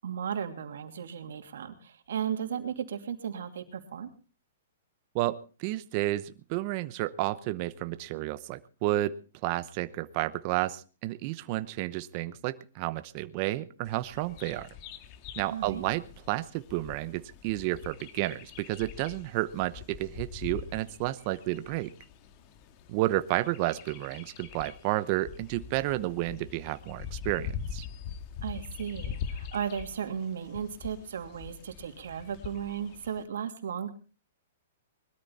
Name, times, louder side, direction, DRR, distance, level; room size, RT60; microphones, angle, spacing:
voice 1, 0.0-4.1 15.5-15.8 28.4-33.9, right 8 dB, 80° right, 6 dB, 2.8 m, -35 dB
voice 2, 5.1-9.1 9.4-14.7 15.4-21.9 22.9-27.9, right 17 dB, 40° right, 13 dB, 0.9 m, -31 dB
Bird vocalization bird call bird song, 13.8-33.2, left 7 dB, 40° left, 1.8 m, -43 dB
21.0 x 13.0 x 4.2 m, 0.35 s
hypercardioid pair, 145°, 0 cm